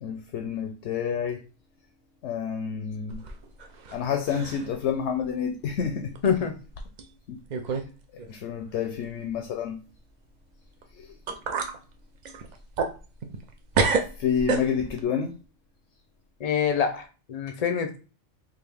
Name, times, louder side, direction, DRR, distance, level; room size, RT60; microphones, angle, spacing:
voice 1, 0.0-1.4 2.2-3.2 3.9-6.1 7.3-7.4 8.3-9.8 11.0-11.1 14.2-15.3, left 7 dB, 70° left, 0.8 m, -29 dB
sound 1, 3.1-4.0 4.3-4.7 5.2-5.3 6.1-6.3 7.0-7.1 7.5-7.9 8.2-8.3 10.8-10.9 11.3-11.8 12.2-13.5 13.7-15.0, right 4 dB, 60° right, 0.4 m, -28 dB
voice 2, 6.2-6.5 16.4-18.0, left 7 dB, 55° left, 0.4 m, -25 dB
3.7 x 2.6 x 3.4 m
omnidirectional pair, 1.3 m